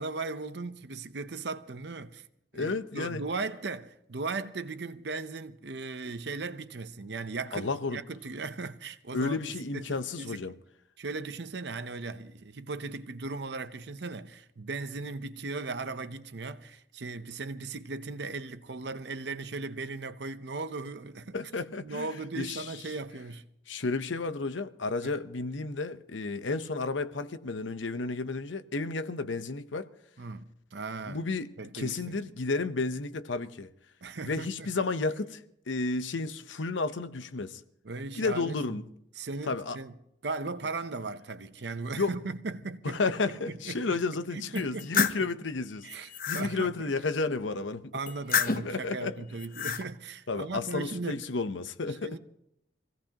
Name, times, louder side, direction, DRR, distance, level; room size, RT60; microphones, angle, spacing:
voice 1, 0.0-2.3 2.5-10.4 11.0-21.4 21.8-23.5 25.0-25.1 30.2-31.2 31.6-32.2 34.0-34.7 37.8-38.8 39.2-39.9 40.2-44.0 44.3-45.3 45.8-46.7 47.9-51.2 51.9-52.2, right 3 dB, 65° right, 0.8 m, -37 dB
voice 2, 2.5-3.2 7.5-8.0 9.1-10.5 21.3-22.1 22.4-22.7 23.7-29.9 31.1-33.7 34.2-37.6 38.1-38.8 39.5-39.8 42.0-42.1 42.8-47.9 48.5-49.2 50.3-52.2, left 3 dB, 90° left, 0.8 m, -32 dB
sound 1, 44.5-45.2 45.8-46.5 48.1-48.8 49.3-49.8, left 6 dB, 50° left, 0.7 m, -29 dB
25.0 x 16.5 x 2.9 m
head